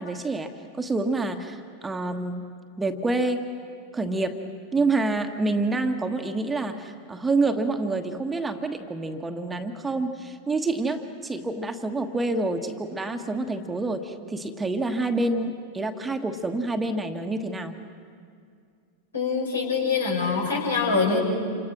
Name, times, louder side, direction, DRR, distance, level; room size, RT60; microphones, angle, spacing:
voice 1, 0.0-2.5 2.8-3.5 3.9-4.5 4.7-17.8, right 2 dB, 10° right, 6 dB, 1.3 m, -27 dB
voice 2, 19.1-21.2, left 4 dB, 75° left, -1 dB, 5.2 m, -24 dB
28.0 x 26.0 x 6.3 m, 2.3 s
figure-of-eight pair, 90°, 0 cm